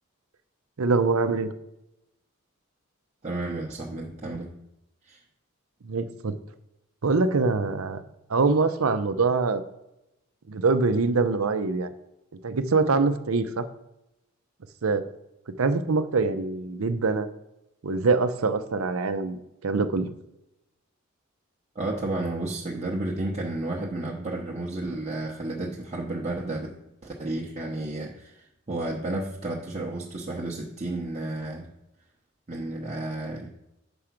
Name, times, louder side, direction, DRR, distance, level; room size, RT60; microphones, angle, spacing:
voice 1, 0.8-1.5 5.9-6.4 7.0-8.0 8.3-9.6 10.5-11.9 12.4-13.7 14.8-15.0 15.6-17.3 17.8-20.0, right 4 dB, 75° right, 10 dB, 0.6 m, -24 dB
voice 2, 3.2-4.5 5.0-5.2 21.7-26.7 27.0-31.7 32.5-33.5, right 2 dB, 30° right, -3 dB, 0.8 m, -32 dB
6.9 x 5.0 x 5.9 m, 0.90 s
head